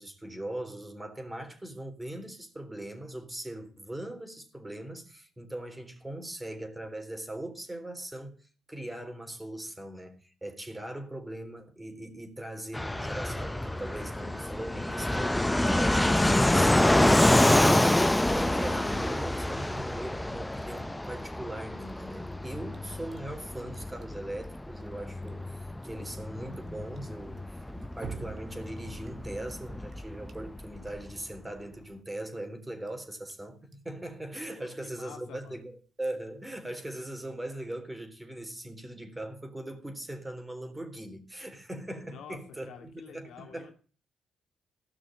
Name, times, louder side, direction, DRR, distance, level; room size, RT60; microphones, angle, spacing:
voice 1, 0.0-43.7, right 1 dB, 10° right, 3.8 m, -40 dB
Fixed-wing aircraft airplane, 12.7-31.1, left 1 dB, 10° left, 0.6 m, -27 dB
Drip, 18.7-36.7, right 4 dB, 45° right, 2.0 m, -53 dB
voice 2, 34.5-35.6 42.0-42.4 42.7-43.7, left 8 dB, 80° left, 2.3 m, -49 dB
17.0 x 6.3 x 9.0 m
cardioid pair, 90°, 0 cm